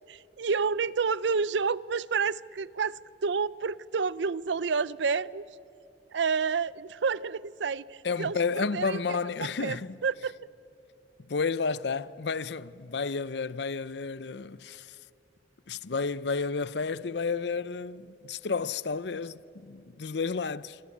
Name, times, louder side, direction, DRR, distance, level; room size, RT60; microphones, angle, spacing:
voice 1, 0.1-5.4 6.1-9.0 9.4-9.8 10.0-10.3, right 5 dB, 85° right, 0.5 m, -29 dB
voice 2, 8.0-10.0 11.2-15.0 15.7-20.8, left 4 dB, 70° left, 0.6 m, -31 dB
26.5 x 26.0 x 8.5 m
head